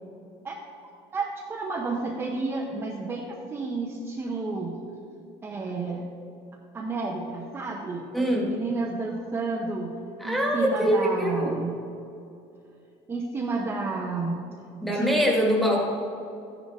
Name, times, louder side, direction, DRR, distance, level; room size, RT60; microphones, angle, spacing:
voice 1, 0.8-4.8 5.4-6.0 6.7-9.9 10.2-11.8 13.1-14.4 14.8-15.3, right 3 dB, 15° right, -2 dB, 0.9 m, -31 dB
voice 2, 8.1-8.5 10.2-11.6 14.8-15.9, equal, ahead, -2 dB, 1.7 m, -23 dB
14.0 x 10.5 x 3.6 m, 2.6 s
cardioid pair, 165°, 13 cm